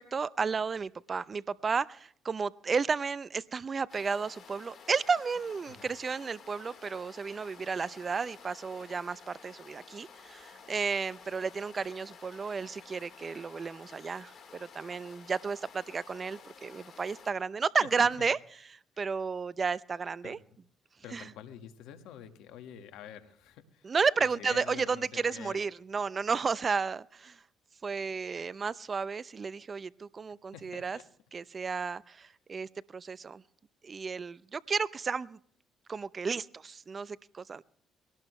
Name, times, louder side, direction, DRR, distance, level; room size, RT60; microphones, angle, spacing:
voice 1, 0.0-18.4 19.0-20.4 21.1-21.2 23.8-27.4 27.8-31.0 31.3-33.4 33.8-35.4 35.9-37.6, right 5 dB, 40° right, 18 dB, 0.7 m, -32 dB
sound 1, 3.9-17.3, left 6 dB, 55° left, 4.2 m, -53 dB
voice 2, 17.8-18.3 19.0-19.1 20.2-20.6 21.0-23.9 24.2-25.6 30.5-31.1, left 9 dB, 80° left, 8 dB, 1.8 m, -48 dB
21.5 x 18.0 x 3.3 m, 0.62 s
supercardioid pair, 65°, 0 cm